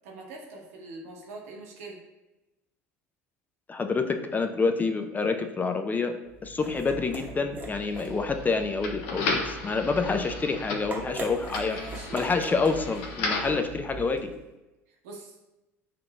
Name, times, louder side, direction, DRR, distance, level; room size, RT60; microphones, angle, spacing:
voice 1, 0.0-2.0 11.0-12.5 15.0-15.3, right 2 dB, 70° right, -1 dB, 0.8 m, -43 dB
voice 2, 3.7-6.1 6.4-11.8 12.1-14.3, left 4 dB, 20° left, 7 dB, 0.4 m, -27 dB
sound 1, 6.3-14.5, right 3 dB, 20° right, 0.9 m, -42 dB
sound 2, 7.7-13.6, left 3 dB, 65° left, 0.6 m, -35 dB
5.7 x 2.5 x 2.2 m, 0.99 s
hypercardioid pair, 70°, 8 cm